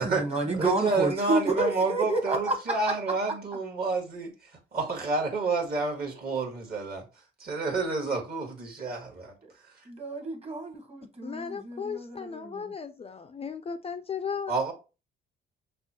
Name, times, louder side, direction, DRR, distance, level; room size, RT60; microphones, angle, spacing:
voice 1, 0.0-2.9 9.9-12.6, right 2 dB, 30° right, 1.3 m, -30 dB
voice 2, 0.5-7.0 7.4-9.3 14.5-14.7, right 3 dB, 50° right, 1.6 m, -29 dB
voice 3, 11.0-14.5, left 6 dB, 30° left, 0.3 m, -36 dB
5.8 x 2.3 x 2.9 m
cardioid pair, 90°, 20 cm